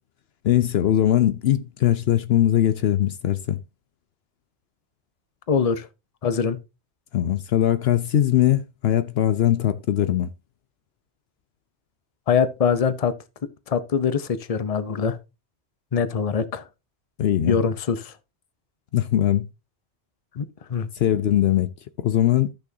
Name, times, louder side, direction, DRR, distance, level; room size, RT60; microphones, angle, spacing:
voice 1, 0.4-3.6 7.1-10.3 17.2-17.6 18.9-19.5 21.0-21.7 22.0-22.5, left 11 dB, 70° left, 0.8 m, -21 dB
voice 2, 5.5-5.9 6.2-6.6 12.3-13.1 13.7-15.2 15.9-16.7 17.5-18.1 20.4-20.9, left 6 dB, 35° left, 0.8 m, -23 dB
14.0 x 6.1 x 2.7 m
omnidirectional pair, 1.1 m